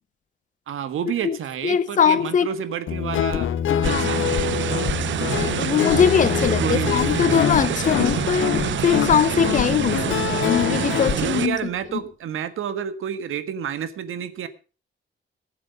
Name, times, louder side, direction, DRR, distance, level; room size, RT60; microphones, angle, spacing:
voice 1, 0.7-3.5 3.8-4.7 6.6-7.1 11.1-14.5, right 8 dB, 90° right, 1.5 m, -29 dB
voice 2, 1.6-2.5 3.7-4.2 5.6-11.6, left 8 dB, 40° left, 0.7 m, -21 dB
Guitar, 2.9-11.2, left 9 dB, 80° left, 1.1 m, -25 dB
sound 1, 3.8-11.5, right 10 dB, 65° right, 0.8 m, -26 dB
sound 2, 5.7-12.1, equal, 5° right, 1.7 m, -39 dB
19.0 x 7.8 x 5.4 m
wide cardioid pair, 180°, 21 cm